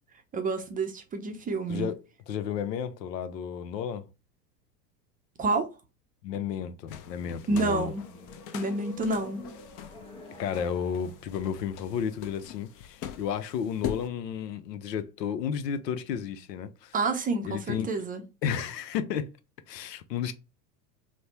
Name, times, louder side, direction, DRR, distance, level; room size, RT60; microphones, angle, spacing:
voice 1, 0.3-1.9 5.4-5.7 7.5-8.1 8.5-9.4 16.9-18.2, right 3 dB, 20° right, 0.5 m, -28 dB
voice 2, 1.7-4.1 6.2-7.9 10.4-16.9 17.4-17.9 18.4-19.3 19.7-20.3, left 8 dB, 80° left, 0.7 m, -32 dB
sound 1, 6.9-14.1, left 9 dB, 40° left, 0.6 m, -42 dB
sound 2, 7.4-12.4, left 1 dB, 10° left, 1.1 m, -49 dB
3.2 x 2.1 x 4.2 m
hypercardioid pair, 95°, 48 cm